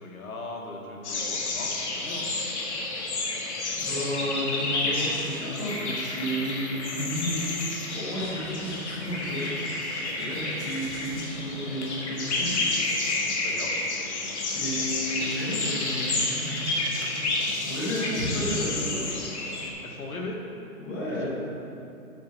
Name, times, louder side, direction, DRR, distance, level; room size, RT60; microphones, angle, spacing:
voice 1, 0.0-2.3 10.2-10.4 13.4-13.8 19.8-20.4 21.1-21.3, left 2 dB, 75° left, 0 dB, 1.9 m, -38 dB
sound 1, 1.0-19.7, left 2 dB, 50° left, 1.6 m, -30 dB
voice 2, 3.8-7.7 7.9-9.4 10.2-12.6 14.5-17.3 17.5-19.4 20.8-21.3, equal, 10° left, -8 dB, 0.8 m, -32 dB
8.6 x 7.7 x 4.2 m, 2.7 s
hypercardioid pair, 175°, 42 cm